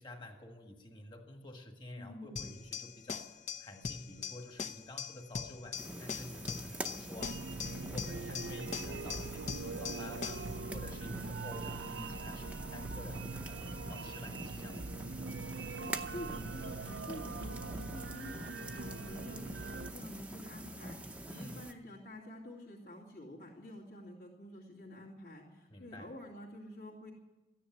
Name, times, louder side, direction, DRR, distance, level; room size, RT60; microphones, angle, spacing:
voice 1, 0.0-15.1 21.3-21.7 25.7-26.1, left 1 dB, 25° left, 4 dB, 1.7 m, -50 dB
voice 2, 2.0-2.5 11.8-12.4 15.7-27.1, left 1 dB, 60° left, -6 dB, 2.6 m, -49 dB
sound 1, 2.4-10.6, left 6 dB, 40° left, 0.7 m, -42 dB
sound 2, 5.7-21.7, right 1 dB, 5° right, 0.7 m, -45 dB
sound 3, 7.2-19.9, right 4 dB, 90° right, 0.6 m, -43 dB
14.0 x 10.0 x 9.5 m, 1.1 s
head